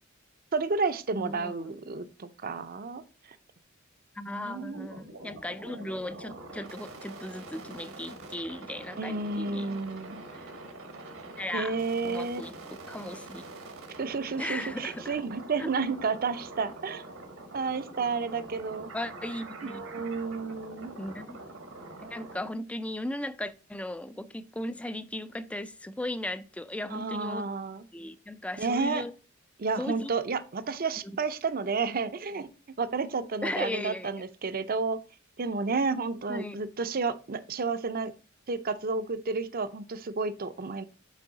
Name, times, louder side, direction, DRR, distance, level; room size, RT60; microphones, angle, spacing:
voice 1, 0.5-3.0 4.3-4.9 9.0-10.2 11.5-12.4 14.0-17.0 17.5-18.9 19.6-20.9 26.9-27.9 28.6-29.0 29.6-32.5 32.8-35.0 35.4-38.1 38.5-40.8, right 4 dB, 45° right, 12 dB, 0.5 m, -31 dB
voice 2, 1.1-1.8 4.2-9.8 10.3-10.5 11.4-11.8 12.0-13.4 14.4-15.2 15.6-15.7 18.9-19.8 21.0-21.4 22.1-27.5 27.9-29.1 29.8-30.1 31.0-31.2 33.4-34.1 36.3-36.6, left 1 dB, 5° left, 13 dB, 0.3 m, -37 dB
sound 1, 4.7-22.5, right 2 dB, 80° right, 1.5 m, -45 dB
8.2 x 3.9 x 3.9 m, 0.36 s
head